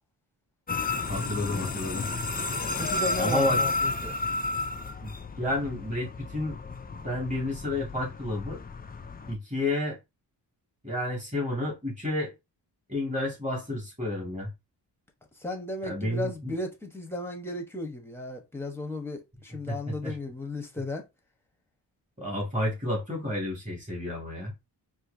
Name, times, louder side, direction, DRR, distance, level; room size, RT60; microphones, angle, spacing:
sound 1, 0.7-9.3, left 3 dB, 25° left, 0.4 m, -32 dB
voice 1, 1.1-2.0 3.2-3.6 5.0-6.6 6.9-8.6 9.3-10.0 10.8-12.3 12.9-14.5 15.8-16.5 19.7-19.8 20.0-20.1 22.2-24.5, left 1 dB, 15° right, 1.9 m, -31 dB
voice 2, 2.7-4.2 15.4-21.0, left 2 dB, 5° left, 1.0 m, -35 dB
4.4 x 2.7 x 2.6 m
wide cardioid pair, 105°, 42 cm